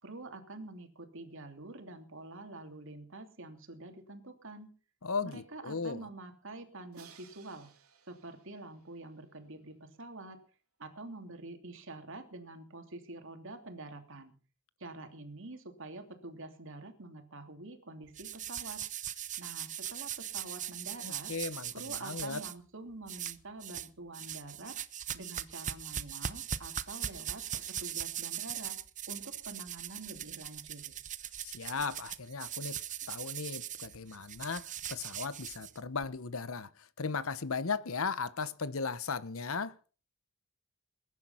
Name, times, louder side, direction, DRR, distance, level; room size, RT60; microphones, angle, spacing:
voice 1, 0.0-4.7 5.2-7.7 8.1-10.4 10.8-14.3 14.8-18.8 19.4-21.3 21.7-24.8 25.1-28.8 29.1-30.9, right 2 dB, 60° right, 3.0 m, -47 dB
voice 2, 5.0-6.1 21.0-22.4 31.4-32.8 33.0-39.8, left 4 dB, 70° left, 1.0 m, -37 dB
Crash cymbal, 6.9-9.9, right 6 dB, 80° right, 3.0 m, -60 dB
sound 1, 18.2-22.5 23.1-23.9 24.1-36.0, right 10 dB, 35° right, 0.9 m, -40 dB
21.0 x 10.5 x 5.7 m
head